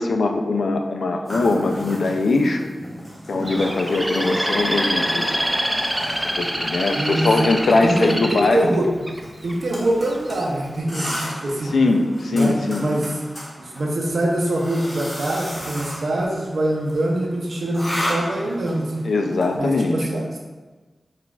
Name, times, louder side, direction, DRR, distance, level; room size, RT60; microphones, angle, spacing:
voice 1, 0.0-2.7 3.3-5.4 6.3-8.6 11.7-12.9 19.0-20.3, left 3 dB, 85° left, 4 dB, 0.3 m, -21 dB
sound 1, 1.2-19.6, equal, 25° left, 1.4 m, -34 dB
Bird, 3.5-9.5 10.1-10.5, right 1 dB, 10° right, 0.3 m, -26 dB
voice 2, 7.0-7.3 7.8-8.9 9.4-11.1 11.4-11.7 12.3-13.1 13.6-19.0 19.6-20.4, right 1 dB, 80° right, -1 dB, 0.6 m, -24 dB
5.7 x 2.4 x 2.3 m, 1.3 s
wide cardioid pair, 90°, 0 cm